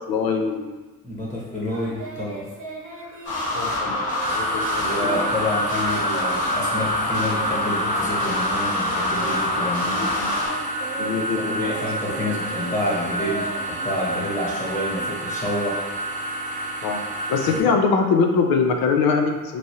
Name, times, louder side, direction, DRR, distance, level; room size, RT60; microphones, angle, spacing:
voice 1, 0.1-0.8 3.5-4.0 4.3-5.3 10.0-10.4 11.0-11.5 16.8-19.6, left 5 dB, 65° left, 3 dB, 0.6 m, -23 dB
voice 2, 1.0-2.5 3.9-4.0 4.8-10.1 11.3-15.8 17.5-17.8, left 1 dB, 20° left, -5 dB, 1.1 m, -28 dB
Singing, 1.7-9.7 9.9-15.8, right 4 dB, 50° right, 1.1 m, -37 dB
sound 1, 3.2-10.5, left 2 dB, 35° left, 1.4 m, -26 dB
sound 2, 4.2-17.6, right 1 dB, 20° right, 0.5 m, -29 dB
3.1 x 2.6 x 2.7 m, 1.2 s
hypercardioid pair, 50°, 39 cm